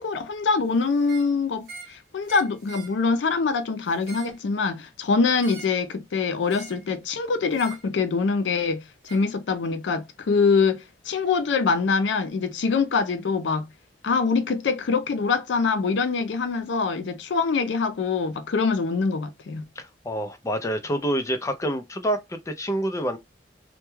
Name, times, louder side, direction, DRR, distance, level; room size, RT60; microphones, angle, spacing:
voice 1, 0.0-8.8 9.1-13.7 14.0-19.6, left 4 dB, 80° left, 0.4 m, -24 dB
sound 1, 1.0-1.3 1.6-2.0 2.3-3.0 3.9-4.4 5.4-5.8 6.5-6.9 7.5-7.9 9.1-9.3, right 4 dB, 55° right, 0.8 m, -43 dB
voice 2, 19.8-23.2, equal, 15° left, 0.4 m, -27 dB
2.2 x 2.2 x 3.0 m
head